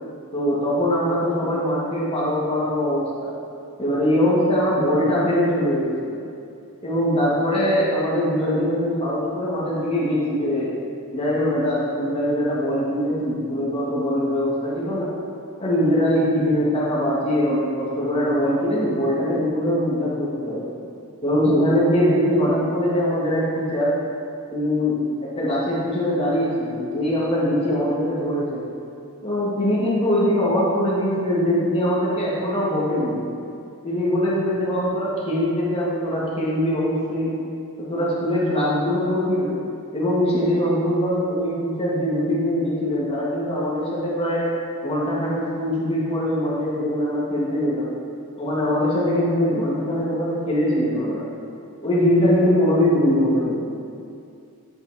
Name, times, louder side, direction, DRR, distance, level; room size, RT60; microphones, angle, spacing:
voice 1, 0.3-3.3 3.8-6.2 6.8-10.7 11.1-15.1 15.6-20.7 21.2-23.9 24.5-25.0 25.4-28.7 29.2-33.2 33.8-37.3 37.8-39.5 39.9-44.4 44.8-47.9 48.4-51.3 51.8-53.6, equal, 25° left, -7 dB, 1.7 m, -22 dB
9.6 x 4.0 x 4.8 m, 2.5 s
head